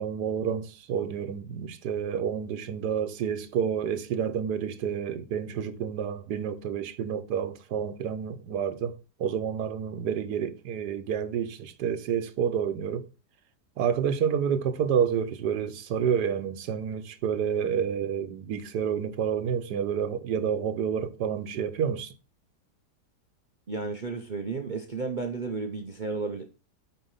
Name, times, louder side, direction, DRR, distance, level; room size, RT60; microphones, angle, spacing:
voice 1, 0.0-13.1 13.8-22.1, right 7 dB, 85° right, 1.4 m, -29 dB
voice 2, 23.7-26.5, right 4 dB, 35° right, 0.9 m, -33 dB
9.0 x 4.5 x 5.5 m
omnidirectional pair, 1.7 m